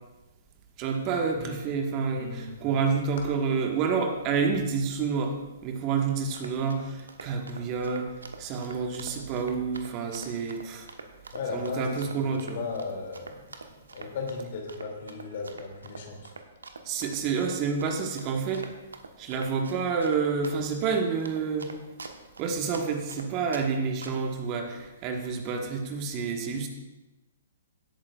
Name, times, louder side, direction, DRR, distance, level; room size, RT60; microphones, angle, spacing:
voice 1, 0.8-5.4 5.6-10.9 11.5-12.6 16.8-18.7 19.2-21.7 22.4-26.7, right 5 dB, 35° right, 3 dB, 1.4 m, -29 dB
voice 2, 2.1-2.6 3.2-3.3 11.3-13.6 13.9-16.4, left 4 dB, 55° left, 1 dB, 2.4 m, -37 dB
Run, 6.1-23.7 24.0-24.3, right 4 dB, 80° right, 1.0 m, -44 dB
17.0 x 8.8 x 2.4 m, 1.1 s
figure-of-eight pair, 125°, 0 cm